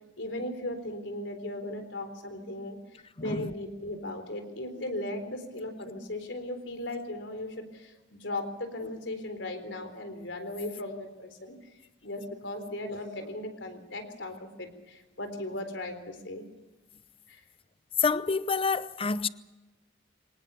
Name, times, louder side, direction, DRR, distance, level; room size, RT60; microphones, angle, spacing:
voice 1, 0.2-2.8 3.2-11.5 12.0-16.5 17.3-17.4, left 1 dB, 75° left, 3.9 m, -37 dB
voice 2, 3.2-3.5 18.0-19.3, left 4 dB, 30° left, 0.7 m, -28 dB
24.0 x 19.0 x 7.0 m
head